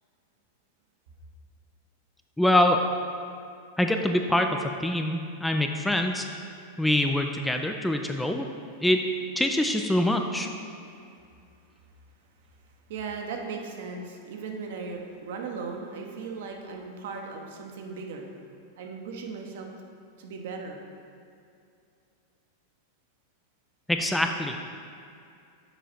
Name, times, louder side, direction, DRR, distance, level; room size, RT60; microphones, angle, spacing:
voice 1, 2.4-2.8 3.8-6.3 6.8-8.5 8.8-9.0 9.4-10.5 23.9-24.6, left 1 dB, 5° left, 4 dB, 0.3 m, -24 dB
voice 2, 12.9-18.3 18.8-19.7 20.2-20.8, right 4 dB, 55° right, 2 dB, 0.8 m, -37 dB
6.9 x 4.9 x 4.2 m, 2.5 s
figure-of-eight pair, 90°, 0 cm